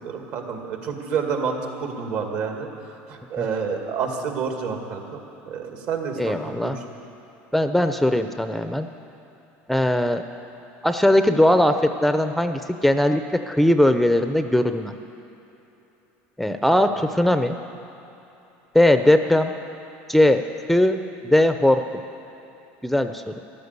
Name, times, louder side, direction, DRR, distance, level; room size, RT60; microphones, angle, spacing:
voice 1, 0.0-2.7 3.1-5.2 5.5-6.7 16.8-16.9, right 6 dB, 65° right, 3 dB, 2.2 m, -29 dB
voice 2, 6.2-6.8 7.5-8.9 9.7-10.2 10.8-14.9 16.4-17.6 18.7-19.5 20.1-20.4 20.7-21.8 22.8-23.4, left 1 dB, ahead, 8 dB, 0.5 m, -19 dB
13.5 x 12.0 x 8.2 m, 3.0 s
supercardioid pair, 120°, 6 cm